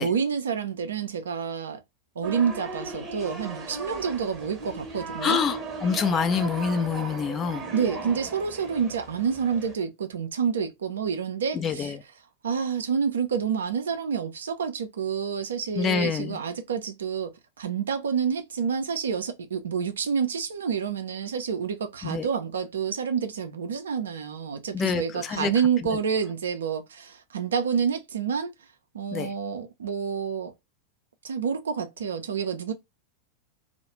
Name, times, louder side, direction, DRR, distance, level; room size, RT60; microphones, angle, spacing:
voice 1, 0.0-1.8 2.2-5.4 7.7-12.0 12.4-28.5 28.9-30.5 31.2-32.7, right 6 dB, 65° right, 0.4 m, -28 dB
St Andreu marketsquare, 2.2-9.8, right 3 dB, 25° right, 0.8 m, -37 dB
voice 2, 5.2-7.6 11.5-12.0 15.8-16.4 22.0-22.3 24.7-25.5 29.1-29.3, left 6 dB, 25° left, 0.3 m, -26 dB
2.3 x 2.0 x 2.9 m
figure-of-eight pair, 90°, 0 cm